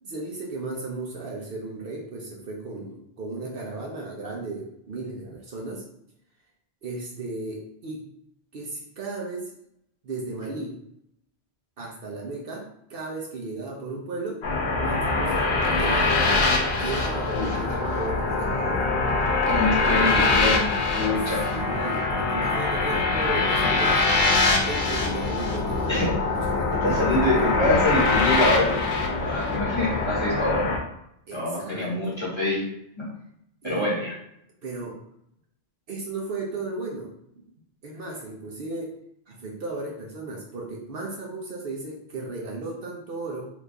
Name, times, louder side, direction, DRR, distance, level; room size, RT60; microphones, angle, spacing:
voice 1, 0.0-5.8 6.8-8.0 8.5-9.5 10.0-10.8 11.8-14.4 14.8-16.5 16.8-18.9 21.5-24.0 24.7-27.5 31.3-32.2 33.6-33.8 34.6-35.0 35.9-37.4 37.8-38.9 39.3-43.4, right 3 dB, 60° right, -2 dB, 0.9 m, -35 dB
sound 1, 14.4-30.8, left 3 dB, 85° left, 0.9 m, -23 dB
voice 2, 19.4-21.4 25.9-26.2 26.8-28.8 29.2-30.7 31.3-32.6 33.0-33.1 33.6-34.1, left 1 dB, 25° left, -7 dB, 1.3 m, -25 dB
3.0 x 2.5 x 3.4 m, 0.74 s
omnidirectional pair, 1.1 m